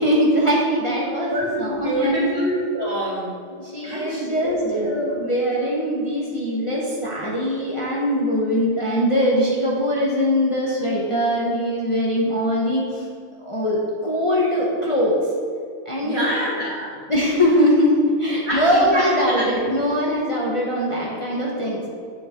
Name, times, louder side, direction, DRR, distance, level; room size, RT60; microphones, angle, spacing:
voice 1, 0.0-2.3 3.5-13.1 13.4-15.1 15.8-16.2 17.1-21.8, equal, 25° left, -5 dB, 1.2 m, -21 dB
voice 2, 1.2-3.3 3.8-5.1 16.0-17.0 18.4-19.7, right 1 dB, 50° right, -7 dB, 2.9 m, -26 dB
9.7 x 7.7 x 3.8 m, 2.2 s
omnidirectional pair, 1.5 m